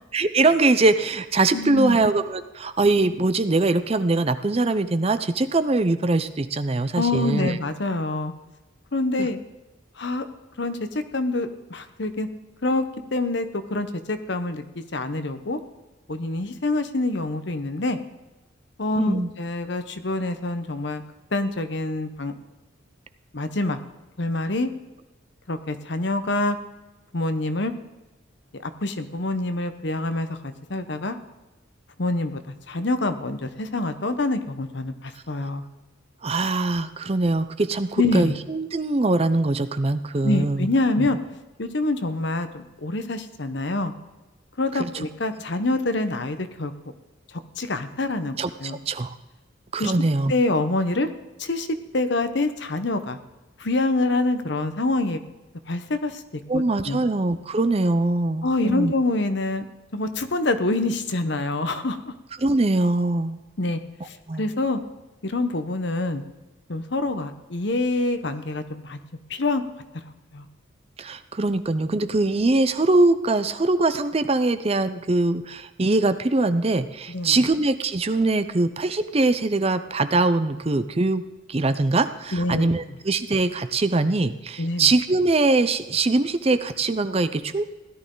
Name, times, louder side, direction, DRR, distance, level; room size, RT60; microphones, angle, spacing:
voice 1, 0.1-7.6 9.2-9.3 19.0-19.3 36.2-40.7 41.0-41.1 44.8-44.9 48.4-49.1 49.7-50.3 56.5-58.9 62.4-63.4 64.3-64.5 71.0-81.2 81.5-87.6, right 2 dB, 30° right, 11 dB, 0.5 m, -22 dB
voice 2, 1.5-2.0 6.9-8.3 8.9-9.4 10.0-10.2 10.6-12.3 12.6-12.8 13.1-15.6 16.1-18.0 18.8-21.0 21.3-22.3 23.3-23.8 24.2-24.7 25.5-26.6 27.1-27.7 28.6-31.2 32.0-35.7 38.0-38.3 40.2-41.2 41.6-43.9 44.6-46.7 47.3-48.8 49.8-49.9 50.3-51.1 51.4-51.7 51.9-53.2 53.6-55.2 55.7-56.2 56.5-57.0 58.4-59.7 59.9-62.1 63.6-64.8 65.2-66.2 66.7-69.0 69.3-69.6 70.3-70.5 77.1-77.4 82.3-83.0 84.6-84.9, left 2 dB, 55° left, 9 dB, 0.9 m, -26 dB
16.5 x 11.5 x 3.9 m, 1.1 s
head